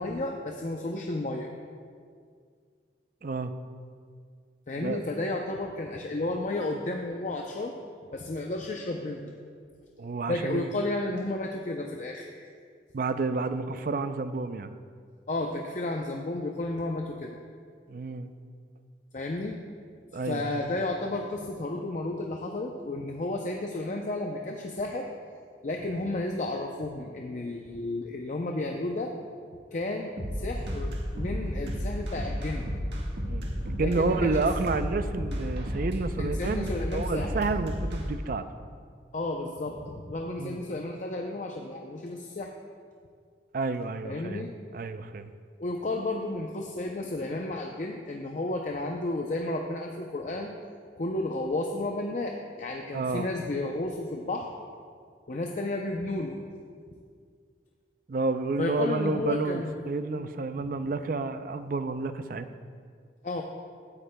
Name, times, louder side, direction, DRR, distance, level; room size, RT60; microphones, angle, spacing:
voice 1, 0.0-1.5 4.7-7.8 8.1-9.3 10.3-12.5 15.3-17.4 19.1-19.6 20.2-25.1 25.6-29.1 29.7-32.7 33.8-34.5 36.2-37.4 39.1-42.5 44.0-44.5 45.6-50.5 51.0-54.5 55.3-56.4 58.6-59.7 60.1-60.2 63.2-63.4, left 2 dB, 45° left, 2 dB, 0.5 m, -32 dB
voice 2, 3.2-3.5 4.8-5.0 10.0-10.7 12.9-14.7 17.9-18.3 20.1-20.5 33.3-38.4 40.4-40.6 43.5-44.4 44.7-45.3 52.9-53.3 58.1-62.5, right 3 dB, 50° right, 10 dB, 0.4 m, -30 dB
sound 1, 30.2-38.0, equal, 75° right, 1.6 m, -32 dB
15.5 x 9.8 x 2.2 m, 2.1 s
head